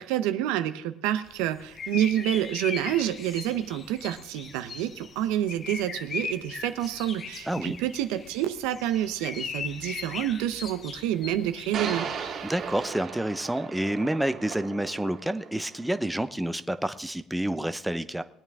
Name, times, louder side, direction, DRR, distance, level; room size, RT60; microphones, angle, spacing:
voice 1, 0.0-12.1, right 12 dB, 85° right, 11 dB, 0.7 m, -28 dB
sound 1, 1.3-12.9, left 5 dB, 40° left, 1.1 m, -39 dB
voice 2, 7.5-7.8 12.4-18.2, right 1 dB, 5° right, 10 dB, 0.7 m, -29 dB
sound 2, 9.0-9.1 11.7-16.1, right 7 dB, 60° right, 2.5 m, -37 dB
20.5 x 8.9 x 3.6 m, 0.73 s
supercardioid pair, 90°, 0 cm